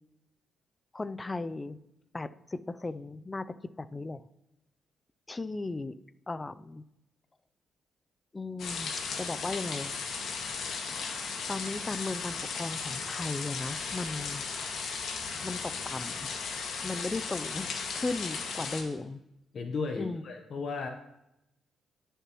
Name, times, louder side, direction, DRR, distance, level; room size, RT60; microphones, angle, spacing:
voice 1, 0.9-1.8 2.1-3.5 3.8-4.2 5.3-5.9 6.3-6.8 8.3-8.9 9.2-9.9 10.9-14.9 15.4-16.5 16.8-19.2 20.0-20.2, left 3 dB, 20° left, 14 dB, 0.4 m, -36 dB
sound 1, 8.6-18.8, left 5 dB, 70° left, 1.8 m, -36 dB
voice 2, 19.5-20.9, left 4 dB, 50° left, 4 dB, 0.9 m, -34 dB
19.5 x 6.8 x 3.0 m, 0.88 s
cardioid pair, 140°, 0 cm